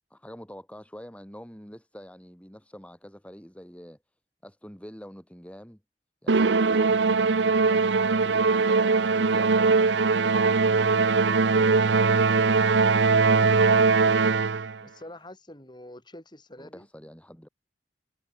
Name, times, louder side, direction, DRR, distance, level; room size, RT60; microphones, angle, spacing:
voice 1, 0.1-4.0 4.4-5.8 6.2-10.3 11.2-12.0 16.6-17.5, equal, 5° left, 3.3 m, -45 dB
Musical instrument, 6.3-14.8, right 4 dB, 75° right, 0.8 m, -21 dB
voice 2, 14.8-16.9, left 1 dB, 25° left, 7.7 m, -46 dB
head